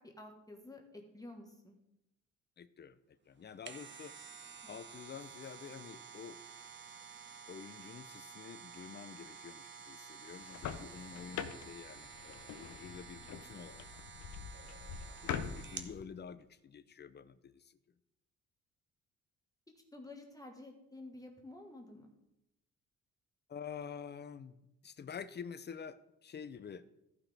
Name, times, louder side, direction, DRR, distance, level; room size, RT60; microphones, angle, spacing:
voice 1, 0.0-1.8 4.6-4.8 19.9-22.1, left 2 dB, 10° left, 2 dB, 1.4 m, -51 dB
voice 2, 2.6-3.0 3.3-4.1 4.7-6.4 7.5-13.9 14.5-17.8 23.5-24.6 24.8-26.8, left 7 dB, 35° left, 14 dB, 0.6 m, -48 dB
sound 1, 3.4-16.0 16.4-16.5, right 6 dB, 40° right, 1.0 m, -51 dB
sound 2, 10.3-16.0, left 8 dB, 70° left, 0.8 m, -44 dB
14.5 x 5.8 x 3.4 m, 0.88 s
cardioid pair, 90°, 30 cm